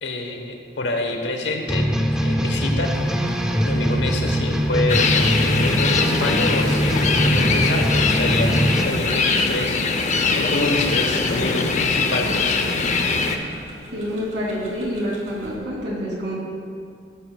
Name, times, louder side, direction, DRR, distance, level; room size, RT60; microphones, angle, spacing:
voice 1, 0.0-1.9 2.2-2.9 3.6-5.1 5.6-8.5 8.8-9.8 10.3-12.6, left 2 dB, 85° left, 4 dB, 1.1 m, -27 dB
sound 1, 1.7-8.8, equal, 5° right, 0.5 m, -22 dB
Tick-tock, 2.7-15.6, right 1 dB, 40° right, 1.9 m, -45 dB
sound 2, 4.9-13.4, left 4 dB, 40° left, 0.6 m, -22 dB
voice 2, 13.9-16.4, equal, 85° right, -4 dB, 2.7 m, -27 dB
13.5 x 11.0 x 2.3 m, 2.3 s
head